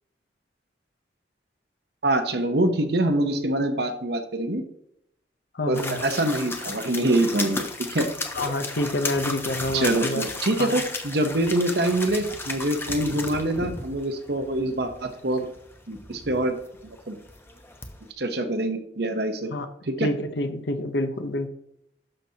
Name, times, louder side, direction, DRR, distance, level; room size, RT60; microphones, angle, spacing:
voice 1, 2.0-4.6 5.7-7.6 7.9-8.1 9.7-15.5 15.9-16.6 16.8-17.2 18.2-19.5 19.8-20.1, right 1 dB, 60° right, 7 dB, 0.9 m, -25 dB
voice 2, 5.5-6.0 8.3-10.3 10.6-10.8 19.5-19.7 20.0-21.5, left 1 dB, 70° left, 9 dB, 0.8 m, -27 dB
sound 1, 5.7-18.1, left 2 dB, 15° left, 0.8 m, -34 dB
12.0 x 5.9 x 2.9 m, 0.76 s
head